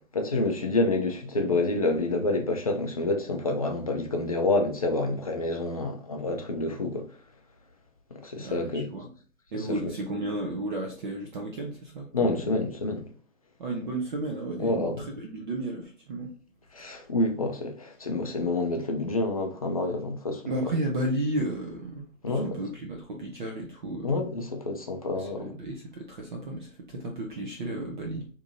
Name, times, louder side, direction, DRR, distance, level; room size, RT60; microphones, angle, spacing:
voice 1, 0.1-7.1 8.1-8.9 9.5-9.9 12.1-13.0 14.6-15.1 16.7-20.4 22.2-22.6 24.0-25.6, left 2 dB, 30° left, 0.3 m, -28 dB
voice 2, 8.4-9.1 9.5-12.4 13.6-16.3 16.9-17.0 20.5-24.2 25.1-28.3, right 1 dB, 35° right, 0.6 m, -33 dB
3.6 x 2.8 x 2.5 m
hypercardioid pair, 140°, 40 cm